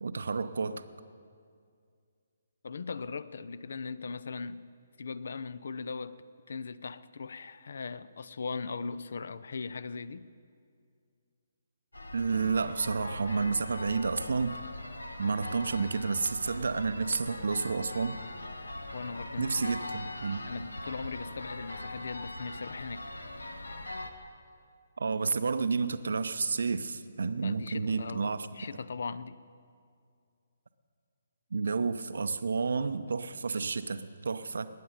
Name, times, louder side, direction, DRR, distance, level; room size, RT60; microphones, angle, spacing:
voice 1, 0.0-0.8 12.1-14.6 15.2-18.2 19.4-20.4 25.0-28.5 31.5-34.7, right 4 dB, 60° right, 12 dB, 0.6 m, -30 dB
voice 2, 2.6-4.6 5.0-6.2 6.5-10.2 18.9-19.7 20.4-23.0 27.4-29.4, left 4 dB, 55° left, 16 dB, 0.5 m, -39 dB
sound 1, 11.9-24.1, left 2 dB, 75° left, 1.1 m, -41 dB
19.5 x 9.4 x 5.4 m, 2.3 s
figure-of-eight pair, 135°, 0 cm